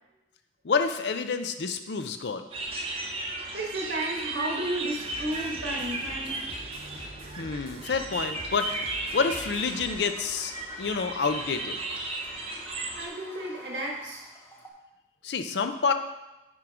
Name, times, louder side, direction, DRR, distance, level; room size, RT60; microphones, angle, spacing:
voice 1, 0.6-2.4 7.4-8.7 9.1-11.8 15.2-15.9, left 5 dB, 75° left, 8 dB, 0.5 m, -28 dB
sound 1, 2.5-13.1, right 2 dB, 35° right, 0.8 m, -35 dB
voice 2, 3.5-6.6 12.9-14.3, right 1 dB, 75° right, -2 dB, 1.6 m, -33 dB
sound 2, 4.9-10.0, right 1 dB, 55° right, 1.4 m, -45 dB
Toilet flush, 9.0-14.7, left 1 dB, 15° left, 0.8 m, -49 dB
6.1 x 4.6 x 5.0 m, 1.0 s
head